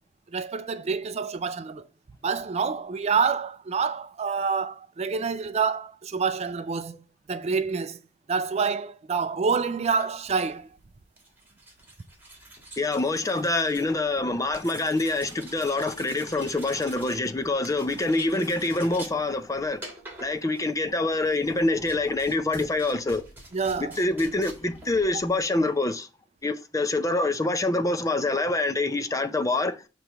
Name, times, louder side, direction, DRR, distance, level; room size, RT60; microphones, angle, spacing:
voice 1, 0.3-1.9 2.2-7.0 7.3-8.0 8.3-10.7 23.5-23.9, right 5 dB, 35° right, 0.4 m, -27 dB
sound 1, 9.9-25.8, right 2 dB, 10° right, 1.6 m, -47 dB
voice 2, 12.8-19.8 20.2-23.2 23.8-26.1 26.4-29.8, left 2 dB, 20° left, 0.5 m, -26 dB
6.6 x 3.1 x 5.6 m
head